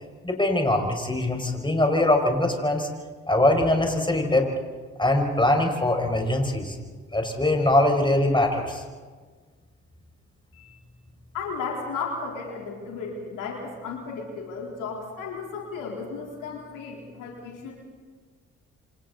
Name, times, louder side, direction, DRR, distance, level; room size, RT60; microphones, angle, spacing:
voice 1, 0.2-2.9 3.3-4.5 5.0-6.8 7.1-8.8, left 1 dB, 15° left, 3 dB, 5.5 m, -22 dB
voice 2, 11.3-17.7, left 4 dB, 85° left, -1 dB, 3.9 m, -34 dB
27.0 x 26.5 x 4.1 m, 1.5 s
supercardioid pair, 45°, 31 cm